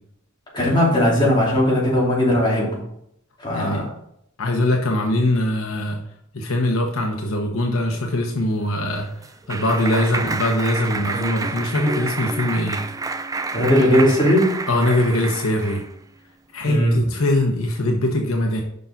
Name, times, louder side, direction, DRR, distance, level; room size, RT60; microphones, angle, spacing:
voice 1, 0.5-2.8 3.4-3.9 13.5-14.5 16.6-17.0, equal, 25° left, -5 dB, 2.7 m, -18 dB
voice 2, 3.5-3.9 4.4-6.0 6.3-9.1 9.5-12.8 13.8-14.0 14.7-15.8 16.5-18.6, left 1 dB, 85° left, 2 dB, 1.0 m, -22 dB
Clapping, 8.7-15.9, right 3 dB, 15° right, 0.4 m, -29 dB
6.7 x 5.6 x 3.9 m, 0.73 s
head